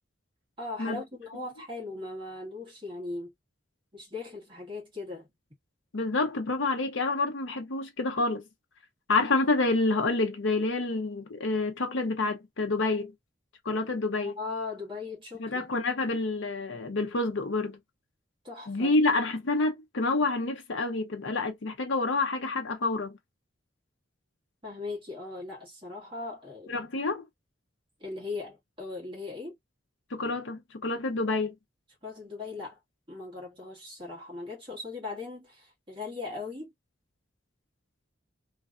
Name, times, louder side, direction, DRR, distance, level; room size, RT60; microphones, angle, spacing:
voice 1, 0.6-3.3 3.9-5.3 14.2-15.7 18.4-18.9 24.6-26.7 28.0-29.5 32.0-32.8 33.1-36.7, left 3 dB, 25° right, 1.6 m, -39 dB
voice 2, 5.9-8.4 9.1-13.1 13.6-14.4 15.4-17.8 18.7-23.2 26.7-27.2 30.1-31.5, left 3 dB, 80° left, 0.7 m, -28 dB
3.3 x 2.4 x 2.4 m
head